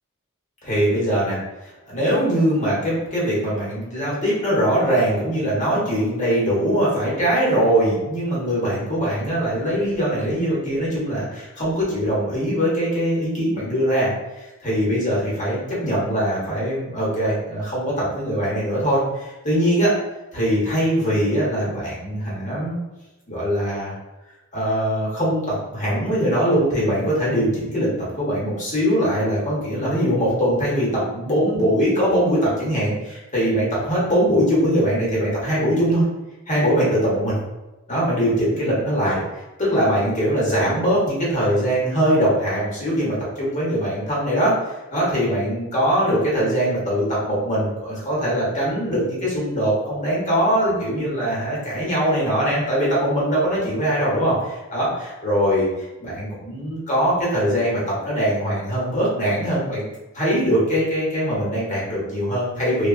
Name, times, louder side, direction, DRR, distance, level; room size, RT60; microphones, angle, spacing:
voice 1, 0.6-19.9 20.3-22.8 23.3-23.9 24.5-27.9 28.1-36.0 36.5-37.4 37.9-39.2 39.6-59.8 60.1-62.9, equal, 35° left, -7 dB, 1.0 m, -22 dB
2.9 x 2.2 x 2.4 m, 1.1 s
head